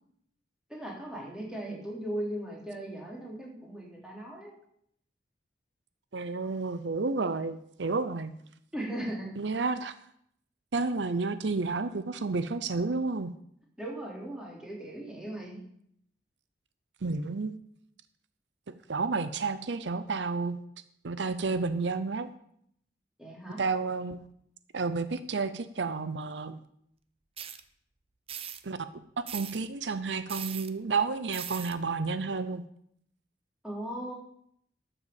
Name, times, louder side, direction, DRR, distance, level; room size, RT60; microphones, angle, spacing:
voice 1, 0.7-4.5 8.7-9.3 13.8-15.6 23.2-23.6 33.6-34.1, right 1 dB, 5° right, -3 dB, 3.5 m, -38 dB
voice 2, 6.1-8.4 9.4-10.0 10.7-13.3 17.0-17.5 18.9-20.6 21.0-22.3 23.6-24.3 24.7-26.6 28.6-28.8 29.2-32.6, right 4 dB, 85° right, 12 dB, 0.7 m, -31 dB
sound 1, 27.4-27.6 28.3-28.6 29.3-29.6 30.3-30.7 31.3-31.7, right 9 dB, 35° right, 0.7 m, -39 dB
12.0 x 6.9 x 7.2 m, 0.70 s
head